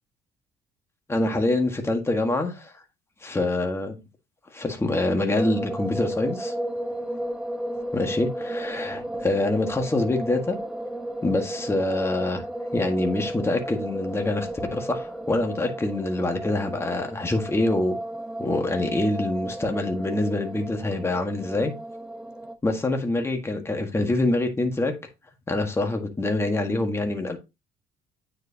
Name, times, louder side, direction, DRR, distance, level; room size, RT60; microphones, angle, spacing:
voice 1, 1.1-2.8 3.2-4.0 4.5-6.5 7.9-10.6 11.2-12.4 12.7-18.0 18.4-21.7 22.6-24.9 25.5-27.4, left 2 dB, 15° left, 1.6 m, -25 dB
sound 1, 5.3-22.6, right 1 dB, 5° right, 0.9 m, -34 dB
9.0 x 4.9 x 2.9 m
cardioid pair, 110°, 17 cm